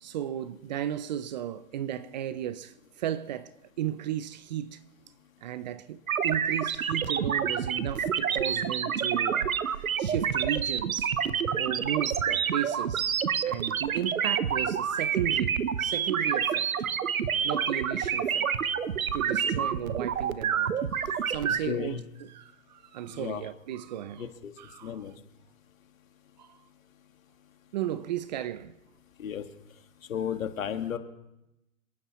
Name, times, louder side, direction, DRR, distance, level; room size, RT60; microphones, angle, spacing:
voice 1, 0.0-4.8 5.4-11.1 11.6-13.1 13.4-16.9 17.4-18.5 19.1-20.7 21.3-24.2 24.6-25.0 26.4-26.6 27.7-28.8, right 11 dB, 35° right, 0.5 m, -35 dB
sound 1, 6.1-21.6, right 8 dB, 90° right, 1.0 m, -28 dB
voice 2, 21.6-22.0 23.1-23.5 24.2-24.5 24.8-25.1 29.2-29.4 30.1-31.0, left 8 dB, 75° left, 1.9 m, -33 dB
28.0 x 11.0 x 3.1 m
hypercardioid pair, 140°, 40 cm